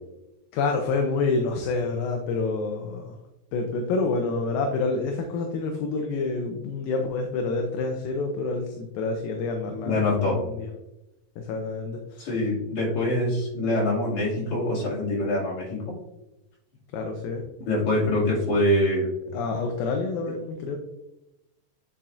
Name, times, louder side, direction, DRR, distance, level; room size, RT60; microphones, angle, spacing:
voice 1, 0.5-3.2 3.5-10.7 11.4-12.3 16.9-17.4 19.3-20.8, left 3 dB, 80° left, 3 dB, 2.4 m, -28 dB
voice 2, 9.9-10.4 12.2-15.8 17.7-19.1, left 1 dB, 50° left, -6 dB, 3.5 m, -24 dB
8.8 x 5.6 x 2.6 m, 0.91 s
omnidirectional pair, 4.3 m